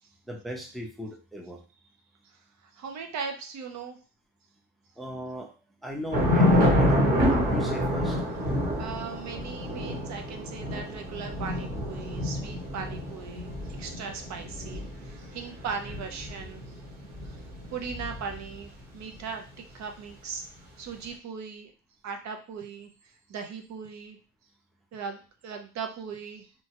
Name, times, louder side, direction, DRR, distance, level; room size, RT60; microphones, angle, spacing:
voice 1, 0.3-1.6 5.0-5.5 5.8-8.2, equal, ahead, -1 dB, 0.6 m, -37 dB
voice 2, 2.6-4.0 8.8-13.5 13.8-16.6 17.2-17.4 17.7-19.4 19.7-20.5 20.8-21.7 22.0-24.2 24.9-26.5, right 6 dB, 55° right, 4 dB, 0.7 m, -38 dB
Thunder / Rain, 6.1-18.6, left 1 dB, 25° right, 1.1 m, -28 dB
2.9 x 2.2 x 2.9 m, 0.34 s
cardioid pair, 120°, 34 cm